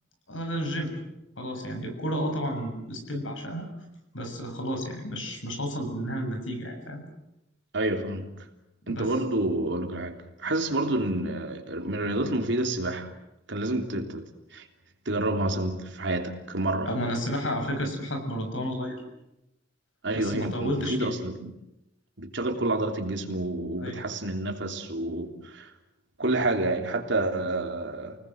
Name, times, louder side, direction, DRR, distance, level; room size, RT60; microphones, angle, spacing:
voice 1, 0.3-1.0 1.4-3.7 4.1-7.0 8.9-9.1 16.8-19.0 20.1-21.1 23.8-24.0, equal, 85° left, 5 dB, 6.9 m, -31 dB
voice 2, 7.7-8.4 8.9-13.1 13.5-14.7 15.0-16.9 20.0-21.5 22.2-25.7 26.2-28.2, right 2 dB, 65° right, 4 dB, 3.2 m, -29 dB
29.5 x 19.5 x 7.9 m, 0.88 s
head